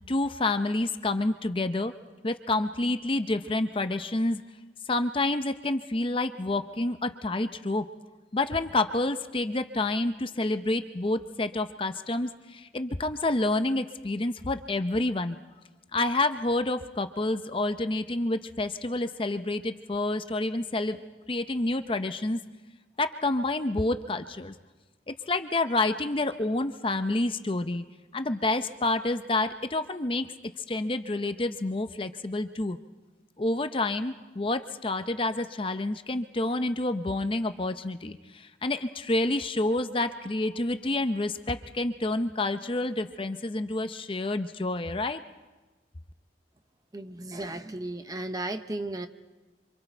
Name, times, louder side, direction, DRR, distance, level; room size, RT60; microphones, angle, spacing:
voice 1, 0.1-1.9 2.2-4.4 4.9-7.9 8.3-15.4 15.9-21.0 21.3-22.4 23.0-24.5 25.1-27.8 28.1-30.3 30.6-32.8 33.4-45.2, left 2 dB, 30° left, 9 dB, 0.7 m, -28 dB
voice 2, 46.9-49.1, right 2 dB, 20° right, 8 dB, 0.8 m, -35 dB
27.5 x 25.5 x 4.5 m, 1.2 s
head